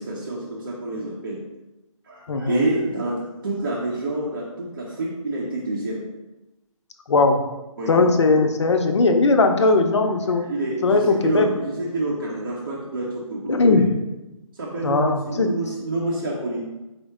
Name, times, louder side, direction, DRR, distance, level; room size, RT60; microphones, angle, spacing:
voice 1, 0.0-1.4 2.0-6.0 7.8-8.1 10.3-13.8 14.5-16.6, right 2 dB, 35° right, -5 dB, 0.7 m, -28 dB
voice 2, 2.3-2.6 7.1-7.4 7.9-10.4 10.8-11.5 13.5-13.9 14.8-15.5, left 3 dB, 55° left, 5 dB, 0.5 m, -19 dB
4.5 x 2.1 x 4.7 m, 1.0 s
figure-of-eight pair, 160°, 18 cm